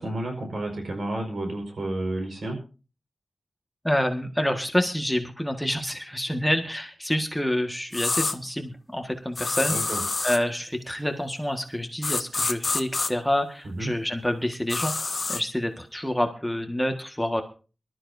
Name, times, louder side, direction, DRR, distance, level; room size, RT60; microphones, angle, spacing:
voice 1, 0.0-2.6 9.7-10.0 13.6-13.9, right 1 dB, 75° right, 3 dB, 4.8 m, -31 dB
voice 2, 3.8-9.8 10.2-14.9 15.3-17.4, left 1 dB, 5° left, 5 dB, 1.6 m, -27 dB
sound 1, 7.9-8.4 9.4-10.4 12.0-13.1 14.7-15.4, left 3 dB, 50° left, 0.9 m, -27 dB
23.5 x 13.0 x 2.7 m, 0.35 s
wide cardioid pair, 95°, 0 cm